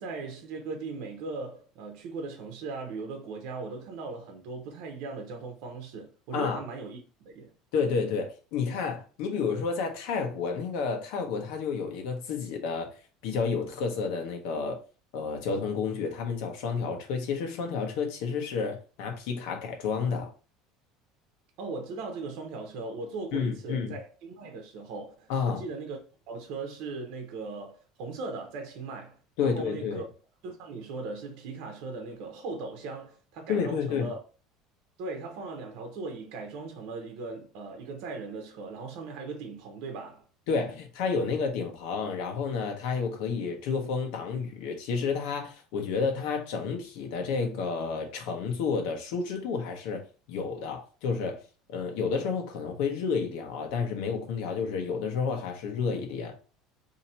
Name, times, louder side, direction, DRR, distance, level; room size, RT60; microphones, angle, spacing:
voice 1, 0.0-7.5 21.6-26.0 26.3-30.1 30.4-34.2 35.0-40.2, right 3 dB, 65° right, 0.8 m, -38 dB
voice 2, 7.7-12.9 13.2-14.8 15.1-20.3 23.3-23.9 25.3-25.6 29.4-30.0 33.5-34.1 40.5-50.0 50.3-51.4 51.7-56.3, left 5 dB, 75° left, 1.0 m, -30 dB
2.8 x 2.8 x 4.3 m
cardioid pair, 145°, 0 cm